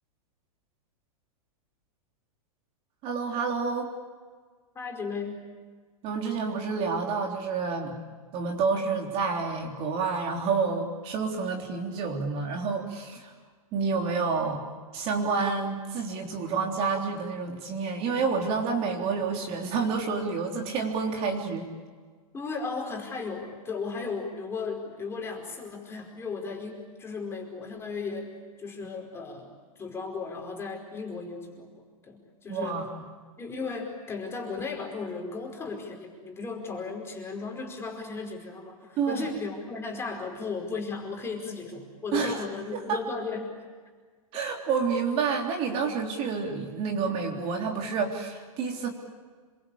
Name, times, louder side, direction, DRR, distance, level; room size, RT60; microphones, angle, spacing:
voice 1, 3.0-3.9 6.0-8.0 8.3-13.3 13.7-14.6 14.9-21.7 32.5-32.9 39.0-39.3 42.1-42.4 42.7-43.0 44.3-48.9, right 5 dB, 30° right, 2 dB, 3.5 m, -29 dB
voice 2, 4.7-5.5 22.3-29.5 29.8-32.8 33.4-43.5, left 4 dB, 15° left, 2 dB, 5.0 m, -36 dB
27.5 x 23.0 x 8.6 m, 1.5 s
hypercardioid pair, 145°, 19 cm